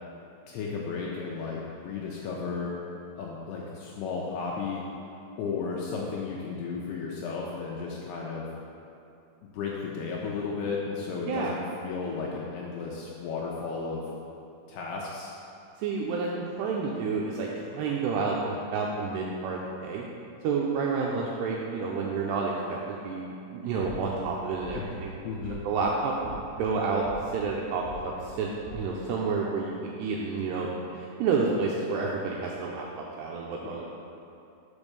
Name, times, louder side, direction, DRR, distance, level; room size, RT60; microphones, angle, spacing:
voice 1, 0.5-2.8 3.2-4.8 5.4-8.5 9.5-14.0 14.7-15.3 24.7-25.6, left 5 dB, 90° left, -3 dB, 2.2 m, -34 dB
voice 2, 15.8-20.1 20.4-25.1 25.6-26.3 26.6-27.1 27.3-33.8, right 4 dB, 90° right, -2 dB, 2.4 m, -30 dB
sound 1, 23.8-24.2 24.6-25.0 25.4-25.9 26.2-26.7 27.0-27.5 27.8-28.3 28.6-28.8, right 2 dB, 65° right, 1.7 m, -42 dB
6.0 x 5.3 x 6.6 m, 2.7 s
omnidirectional pair, 5.4 m